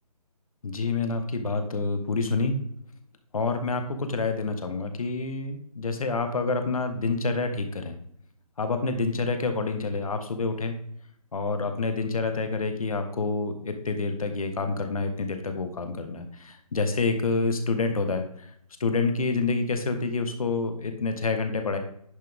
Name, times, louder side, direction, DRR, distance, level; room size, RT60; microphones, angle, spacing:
voice 1, 0.6-2.6 3.3-8.0 8.6-10.8 11.3-18.5 18.8-21.8, left 3 dB, 65° left, 7 dB, 1.7 m, -28 dB
10.5 x 5.8 x 3.6 m, 0.69 s
hypercardioid pair, 160°, 20 cm